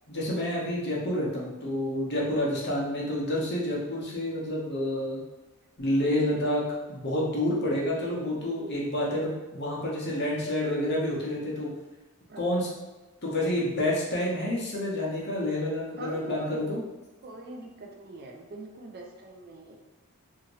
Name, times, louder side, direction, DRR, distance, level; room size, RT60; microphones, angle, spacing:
voice 1, 0.1-5.2 5.8-6.6 6.9-11.7 12.4-12.7 13.2-16.8, left 1 dB, 50° left, -5 dB, 0.8 m, -29 dB
voice 2, 12.3-12.8 16.0-16.6 17.2-19.8, right 3 dB, 45° right, 1 dB, 0.4 m, -42 dB
2.8 x 2.5 x 2.9 m, 1.1 s
head